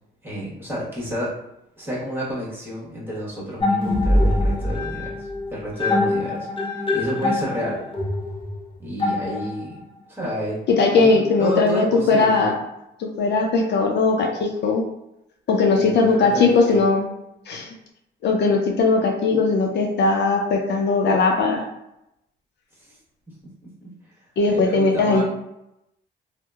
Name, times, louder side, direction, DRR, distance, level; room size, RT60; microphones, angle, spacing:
voice 1, 0.2-1.3 1.8-6.5 6.7-7.8 8.8-9.8 10.1-10.6 10.9-12.4 15.7-16.8 22.8-23.0 23.8-23.9 24.5-25.2, equal, 10° right, -7 dB, 1.2 m, -30 dB
sound 1, 3.6-9.8, left 2 dB, 25° left, 0.7 m, -23 dB
voice 2, 10.7-12.5 13.0-14.8 15.5-17.0 17.5-17.7 18.2-21.6 24.4-25.2, left 3 dB, 60° left, 1 dB, 0.4 m, -19 dB
2.7 x 2.0 x 2.3 m, 0.86 s
cardioid pair, 90°, 20 cm